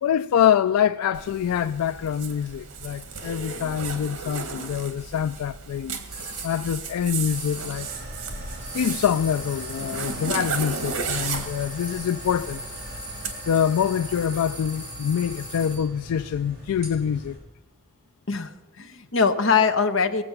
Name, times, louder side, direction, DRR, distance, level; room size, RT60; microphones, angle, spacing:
voice 1, 0.0-7.9 8.7-12.6 13.5-17.4, left 8 dB, 85° left, 0.3 m, -25 dB
Zipper (clothing), 1.1-13.3, right 5 dB, 90° right, 1.7 m, -34 dB
sound 1, 6.1-6.6 7.3-7.9 8.6-16.0, right 1 dB, 15° right, 5.4 m, -40 dB
sound 2, 7.7-17.4, equal, 40° right, 4.6 m, -41 dB
voice 2, 18.3-20.2, left 5 dB, 55° left, 1.0 m, -22 dB
20.0 x 7.7 x 5.8 m
head